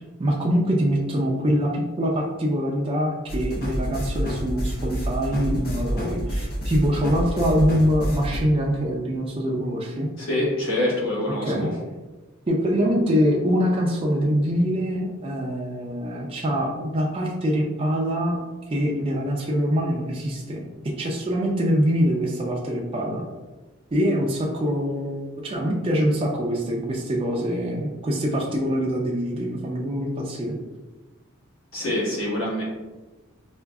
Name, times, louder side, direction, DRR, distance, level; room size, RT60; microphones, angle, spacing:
voice 1, 0.0-10.1 11.4-11.7 12.5-18.4 18.7-20.6 21.0-23.2 23.9-30.6, equal, 25° right, -2 dB, 0.4 m, -24 dB
sound 1, 3.3-8.4, equal, 45° left, 0.6 m, -28 dB
voice 2, 10.2-11.7 31.7-32.6, left 1 dB, 70° left, -6 dB, 1.2 m, -25 dB
4.6 x 2.4 x 2.3 m, 1.2 s
head